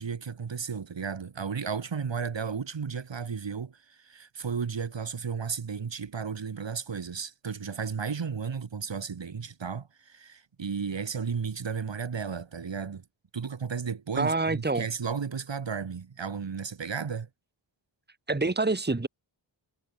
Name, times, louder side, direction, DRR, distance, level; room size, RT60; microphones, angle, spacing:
voice 1, 0.0-13.0 13.3-17.3, right 6 dB, 65° right, 3.6 m, -34 dB
voice 2, 14.2-14.8 18.3-19.1, right 3 dB, 20° right, 2.5 m, -26 dB
wide cardioid pair, 110°, 47 cm